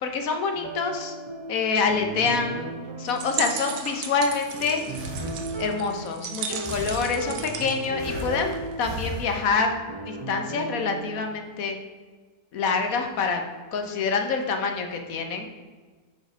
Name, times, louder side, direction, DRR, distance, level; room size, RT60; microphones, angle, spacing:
voice 1, 0.0-1.1 1.5-4.8 5.6-9.8 10.0-11.8 12.5-13.4 13.7-15.5, left 4 dB, 65° left, 5 dB, 1.4 m, -26 dB
sound 1, 0.5-11.2, right 2 dB, 40° right, 0.3 m, -37 dB
sound 2, 3.1-8.7, right 7 dB, 80° right, 1.3 m, -36 dB
Breathing, 3.8-5.9 6.6-7.6 8.0-9.8, equal, 20° right, 1.0 m, -37 dB
7.7 x 5.3 x 5.1 m, 1.4 s
omnidirectional pair, 1.7 m